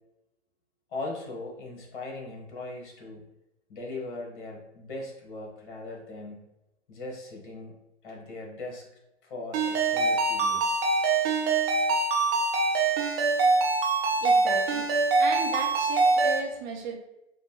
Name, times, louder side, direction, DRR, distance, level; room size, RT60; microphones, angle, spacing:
voice 1, 0.9-3.2 3.7-6.4 6.9-7.7 8.0-8.9 9.2-10.8, left 2 dB, 50° left, 0 dB, 1.3 m, -39 dB
Ringtone, 9.5-16.4, right 3 dB, 20° right, 0.3 m, -24 dB
voice 2, 14.2-14.9 15.2-17.0, right 5 dB, 45° right, 2 dB, 0.8 m, -35 dB
4.9 x 2.2 x 2.9 m, 0.91 s
figure-of-eight pair, 105°, 33 cm